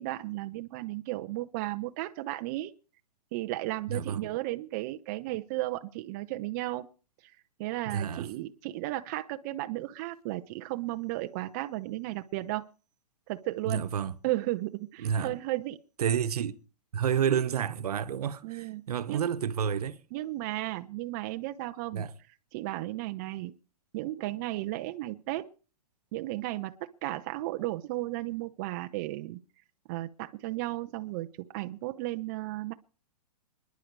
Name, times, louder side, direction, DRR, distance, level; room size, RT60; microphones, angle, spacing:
voice 1, 0.0-2.7 3.3-6.9 7.6-12.6 13.3-13.8 14.2-15.8 18.4-19.3 20.1-22.0 22.5-23.5 23.9-25.5 26.1-29.4 29.9-32.7, right 17 dB, 30° right, 0.7 m, -34 dB
voice 2, 3.9-4.2 7.8-8.3 13.6-14.1 15.0-15.3 16.0-16.6 16.9-20.0 21.9-22.1, right 8 dB, 75° right, 1.2 m, -30 dB
25.5 x 10.5 x 4.7 m
hypercardioid pair, 160°, 20 cm